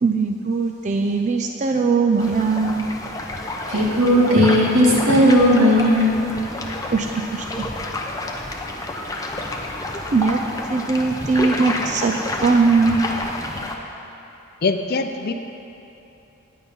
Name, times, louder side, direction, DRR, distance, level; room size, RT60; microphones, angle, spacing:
voice 1, 0.0-2.9 6.9-7.5 10.1-10.4 10.6-12.1 12.4-13.0, right 4 dB, 35° right, 3 dB, 0.4 m, -20 dB
sound 1, 2.2-13.8, left 2 dB, 15° left, 0.7 m, -29 dB
voice 2, 3.7-6.2, equal, 85° right, -5 dB, 2.2 m, -16 dB
voice 3, 14.6-15.3, left 4 dB, 50° left, 7 dB, 0.5 m, -22 dB
9.5 x 8.9 x 5.4 m, 3.0 s
head